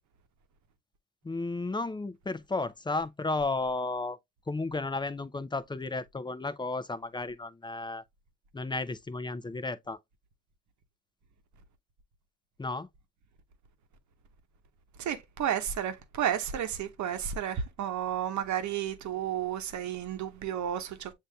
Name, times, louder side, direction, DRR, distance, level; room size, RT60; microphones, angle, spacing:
voice 1, 1.2-4.2 4.5-8.0 8.5-10.0 12.6-12.9, left 3 dB, 15° left, 0.6 m, -33 dB
voice 2, 15.0-21.1, right 9 dB, 60° right, 1.0 m, -32 dB
7.4 x 2.8 x 2.2 m
supercardioid pair, 60°, 32 cm